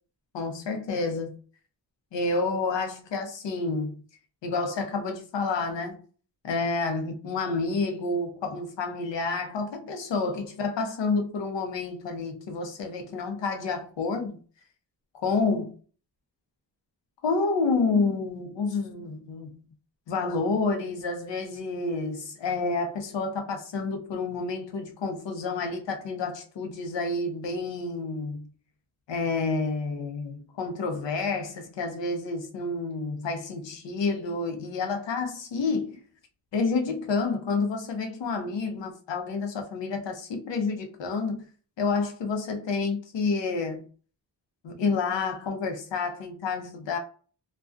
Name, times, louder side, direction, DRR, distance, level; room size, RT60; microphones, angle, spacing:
voice 1, 0.3-1.4 2.1-3.9 4.4-6.0 6.4-14.4 15.1-15.7 17.2-19.6 20.1-28.5 29.1-36.0 36.5-41.4 41.8-43.8 44.6-47.0, left 4 dB, 80° left, 0.7 m, -29 dB
2.3 x 2.2 x 2.4 m
wide cardioid pair, 110°, 43 cm